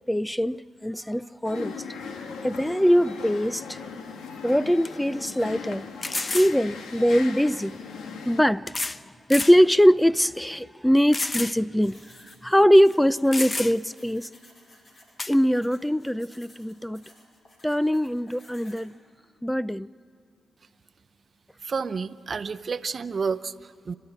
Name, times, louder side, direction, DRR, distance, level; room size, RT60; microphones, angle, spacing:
voice 1, 0.1-1.7 2.4-3.8 4.4-5.9 6.3-7.8 8.3-8.8 9.3-12.0 12.4-14.3 15.3-17.0 17.6-18.9 19.4-19.9, equal, 5° left, 0.4 m, -22 dB
sound 1, 1.4-8.4, left 5 dB, 85° left, 1.4 m, -39 dB
sound 2, 4.2-4.3 4.8-4.9 6.0-6.6 7.7-7.8 8.7-9.0 9.3-9.6 10.1-10.2 11.1-11.6 11.9-12.0 12.9-13.0 13.3-13.9 15.2-15.4, left 2 dB, 35° left, 0.8 m, -30 dB
sound 3, 11.8-18.9, left 1 dB, 55° left, 5.2 m, -55 dB
voice 2, 21.6-24.0, right 5 dB, 55° right, 0.7 m, -30 dB
29.5 x 12.0 x 9.9 m
cardioid pair, 55°, 0 cm